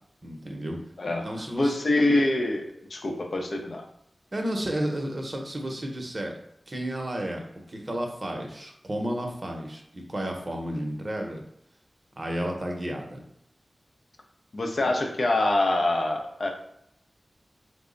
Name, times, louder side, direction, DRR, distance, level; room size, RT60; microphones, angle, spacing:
voice 1, 0.2-0.8 1.1-1.8 4.3-6.3 6.7-7.4 7.7-11.4 12.2-13.2, right 1 dB, 40° right, 2 dB, 0.7 m, -32 dB
voice 2, 1.0-3.9 14.5-16.5, left 2 dB, 65° left, 2 dB, 0.6 m, -25 dB
3.3 x 2.0 x 3.8 m, 0.74 s
cardioid pair, 50°, 0 cm